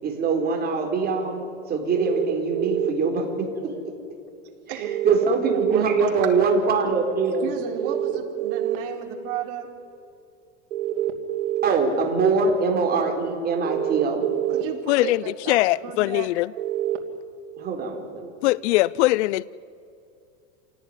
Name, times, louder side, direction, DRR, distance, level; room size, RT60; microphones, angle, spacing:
voice 1, 0.0-3.7 5.0-7.5 11.6-14.3 17.6-18.3, right 4 dB, 25° right, 2 dB, 4.6 m, -23 dB
sound 1, 1.9-2.9 4.8-5.8 7.8-8.8 10.7-11.7 13.6-14.6 16.6-17.0, right 13 dB, 90° right, 2.8 m, -26 dB
voice 2, 4.7-5.0 5.4-6.3 7.4-9.7 14.5-16.3, right 9 dB, 50° right, 2 dB, 4.4 m, -34 dB
voice 3, 14.9-16.5 18.4-19.4, left 18 dB, 70° left, 21 dB, 0.6 m, -21 dB
27.5 x 18.0 x 9.9 m, 2.5 s
supercardioid pair, 140°, 36 cm